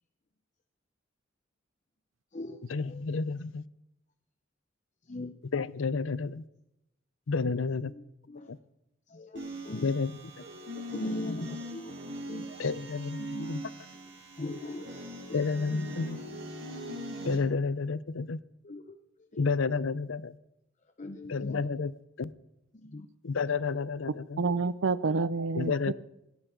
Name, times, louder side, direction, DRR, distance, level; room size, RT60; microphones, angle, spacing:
voice 1, 2.7-3.6 5.5-6.4 7.3-7.9 8.5-8.6 9.8-10.1 10.4-10.5 12.6-13.6 15.3-16.2 17.2-18.4 19.4-20.4 21.3-21.9 22.2-22.3 23.2-24.4 25.6-25.9, left 4 dB, 90° left, 18 dB, 0.6 m, -30 dB
voice 2, 7.4-8.6 9.1-9.9 10.7-11.9 12.3-12.4 13.2-13.7 14.4-14.9 15.3-15.4 15.7-15.8 18.6-19.0 19.3-19.5 21.0-21.7 22.7-23.1, left 1 dB, 40° left, 7 dB, 0.8 m, -39 dB
sound 1, 9.4-17.4, right 1 dB, 65° right, 4.7 m, -41 dB
voice 3, 24.4-25.9, right 4 dB, 80° right, 17 dB, 0.6 m, -28 dB
18.0 x 15.5 x 3.8 m, 0.88 s
head